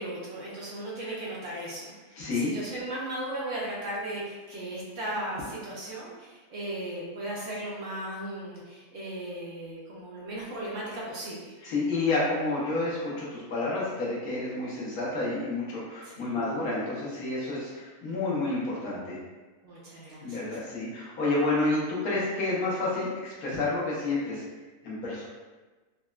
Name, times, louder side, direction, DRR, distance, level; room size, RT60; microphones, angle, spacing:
voice 1, 0.0-11.5 16.0-16.5 19.6-20.6, right 1 dB, 65° right, -6 dB, 0.8 m, -36 dB
voice 2, 2.2-2.5 11.6-19.2 20.2-24.4 24.8-25.3, left 2 dB, 70° left, -6 dB, 1.3 m, -29 dB
3.9 x 2.1 x 2.3 m, 1.3 s
omnidirectional pair, 1.6 m